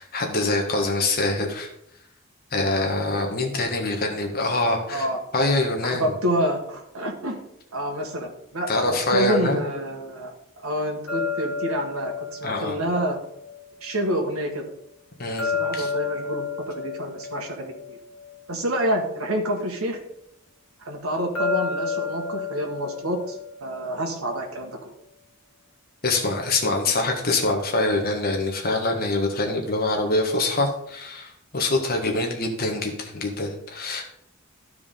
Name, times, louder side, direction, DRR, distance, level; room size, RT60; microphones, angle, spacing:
voice 1, 0.0-1.7 2.5-5.1 5.3-6.1 8.7-9.6 12.4-12.8 15.2-15.9 26.0-34.0, left 2 dB, 45° left, 2 dB, 1.5 m, -24 dB
voice 2, 4.9-5.2 5.8-7.4 7.7-10.3 10.6-13.2 13.8-14.6 15.4-18.0 18.5-20.0 20.8-24.9, equal, 80° right, 1 dB, 1.6 m, -28 dB
sound 1, 11.1-14.2 15.4-18.9 21.4-24.4, left 5 dB, 80° left, 1.4 m, -31 dB
12.5 x 4.8 x 3.7 m, 0.75 s
head